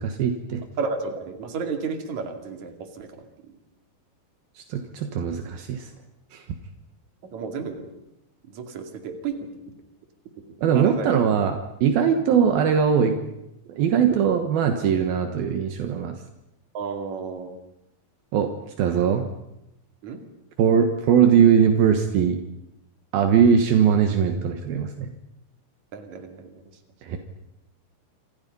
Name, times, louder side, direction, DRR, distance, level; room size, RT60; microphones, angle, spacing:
voice 1, 0.0-0.6 4.7-5.9 6.3-6.4 10.6-13.2 13.7-16.1 18.3-18.5 18.8-19.2 20.6-22.4 23.1-25.1 27.0-27.2, right 7 dB, 75° right, 6 dB, 3.2 m, -20 dB
voice 2, 0.8-3.3 7.2-7.9 8.5-9.4 10.7-11.2 16.7-17.6 20.0-20.2 25.9-26.6, right 5 dB, 50° right, 5 dB, 3.7 m, -32 dB
27.5 x 27.0 x 5.5 m, 0.86 s
omnidirectional pair, 4.4 m